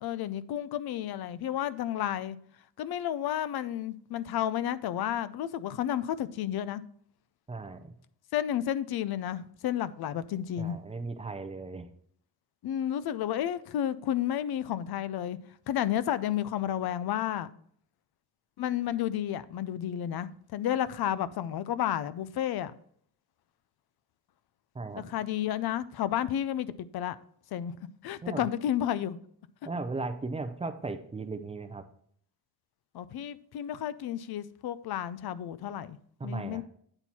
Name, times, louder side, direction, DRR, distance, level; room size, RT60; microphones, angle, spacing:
voice 1, 0.0-2.4 2.8-6.8 8.3-10.8 12.6-15.4 15.7-17.5 18.6-22.7 25.0-27.2 27.5-27.7 28.0-29.2 32.9-36.0 36.2-36.6, left 11 dB, 65° left, 0.5 m, -31 dB
voice 2, 7.5-7.9 10.6-11.9 24.7-25.1 28.2-28.5 29.6-31.8 36.2-36.6, right 3 dB, 15° right, 0.5 m, -36 dB
8.8 x 4.4 x 4.2 m
wide cardioid pair, 160°, 41 cm